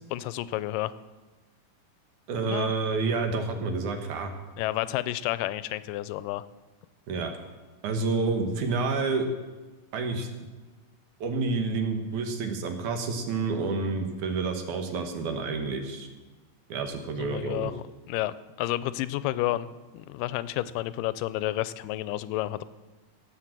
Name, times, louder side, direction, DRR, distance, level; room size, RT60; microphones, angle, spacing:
voice 1, 0.1-0.9 2.5-2.7 4.6-6.5 17.2-22.6, left 15 dB, 85° left, 16 dB, 2.2 m, -31 dB
voice 2, 2.3-4.3 7.1-7.3 7.8-9.3 9.9-10.3 11.2-16.1 16.7-17.7, right 4 dB, 70° right, 5 dB, 2.5 m, -29 dB
17.0 x 6.3 x 7.4 m, 1.3 s
omnidirectional pair, 3.8 m